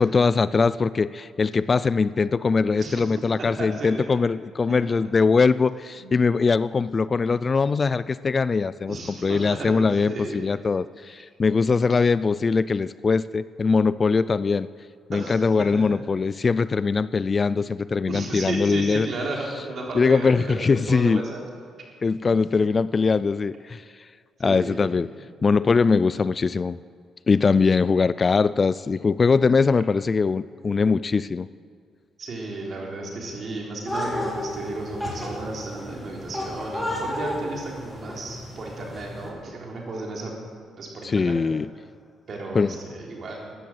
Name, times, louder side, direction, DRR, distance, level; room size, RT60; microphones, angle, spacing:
voice 1, 0.0-14.7 15.1-19.1 19.9-21.2 22.0-23.8 24.4-25.1 25.4-26.8 27.3-31.5 41.0-41.7 42.5-42.7, left 4 dB, 35° left, 17 dB, 0.3 m, -21 dB
voice 2, 2.7-3.1 3.6-3.9 6.0-6.1 8.9-9.7 10.0-10.4 15.1-15.8 18.1-21.4 22.2-22.3 24.4-24.9 32.2-40.3 40.8-41.4 42.3-43.5, right 2 dB, 50° right, -1 dB, 3.8 m, -33 dB
sound 1, 33.9-39.3, left 1 dB, 5° left, 3.4 m, -33 dB
14.0 x 10.0 x 7.8 m, 2.2 s
cardioid pair, 90°, 0 cm